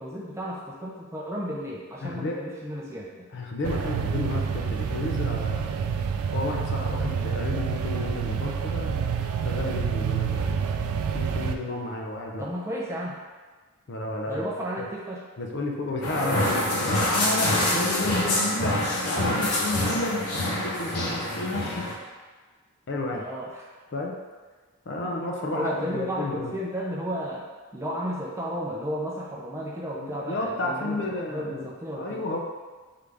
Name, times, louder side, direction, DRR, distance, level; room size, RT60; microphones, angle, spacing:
voice 1, 0.0-3.3 12.4-13.2 14.3-15.2 23.1-23.7 25.0-25.1 25.5-27.5 27.7-32.4, equal, 10° right, -4 dB, 0.4 m, -33 dB
voice 2, 2.0-2.4 3.3-5.7 6.3-10.5 11.1-12.5 13.9-14.5 14.8-14.9 15.4-18.8 19.0-21.9 22.9-23.2 23.9-24.1 24.9-26.5 30.0-31.7 32.0-32.4, left 2 dB, 50° left, 0 dB, 0.5 m, -31 dB
sound 1, 3.6-11.6, right 6 dB, 80° right, 0.3 m, -28 dB
sound 2, 16.0-21.9, left 1 dB, 85° left, 0.8 m, -26 dB
3.8 x 3.4 x 3.4 m, 1.4 s
head